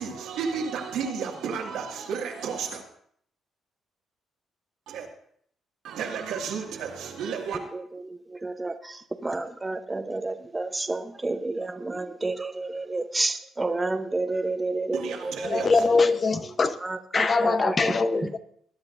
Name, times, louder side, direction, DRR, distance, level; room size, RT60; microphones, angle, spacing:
voice 1, 0.0-2.8 4.9-5.1 5.8-7.6 14.9-16.0, right 6 dB, 85° right, 2.1 m, -32 dB
voice 2, 7.7-15.7 16.8-17.9 18.2-18.3, right 2 dB, 20° right, 0.9 m, -30 dB
voice 3, 15.4-16.8 17.1-18.4, left 4 dB, 40° left, 0.8 m, -22 dB
20.0 x 9.7 x 2.6 m
cardioid pair, 90°, 0 cm